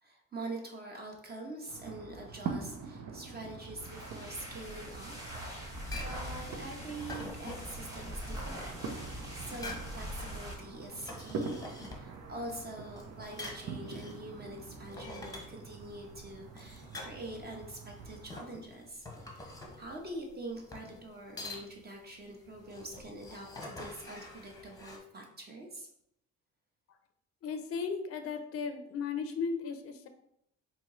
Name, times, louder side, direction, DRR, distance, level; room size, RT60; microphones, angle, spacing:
voice 1, 0.0-5.1 5.4-11.6 11.9-19.5 19.8-25.9, right 1 dB, 30° right, 1 dB, 1.0 m, -45 dB
sound 1, 1.7-18.3, right 4 dB, 70° right, 0.6 m, -45 dB
sound 2, 3.7-10.6, equal, 10° right, 1.4 m, -43 dB
sound 3, 5.7-25.0, left 2 dB, 10° left, 0.9 m, -47 dB
voice 2, 27.4-30.1, left 5 dB, 50° left, 7 dB, 0.5 m, -36 dB
4.4 x 2.7 x 3.0 m, 0.76 s
cardioid pair, 90°, 30 cm